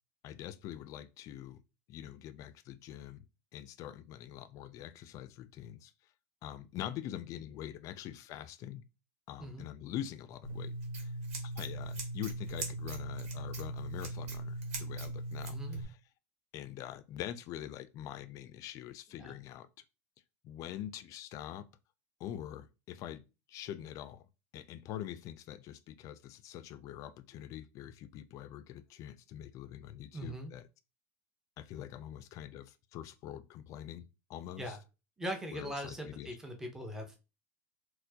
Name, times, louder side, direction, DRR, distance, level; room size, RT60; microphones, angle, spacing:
voice 1, 0.2-1.6 1.9-3.3 3.5-5.9 6.4-8.8 9.3-10.7 11.0-11.1 11.4-16.0 16.5-19.7 20.4-21.7 22.2-24.3 24.5-30.7 31.6-34.8 35.5-36.4, left 11 dB, 45° left, 0.4 m, -44 dB
Scissors, 10.4-15.8, right 1 dB, 80° right, 1.2 m, -39 dB
voice 2, 15.5-15.8 19.2-19.3 30.1-30.5 34.6-34.8 35.2-37.2, equal, 5° right, 0.6 m, -41 dB
4.2 x 2.1 x 2.7 m
supercardioid pair, 120°, 8 cm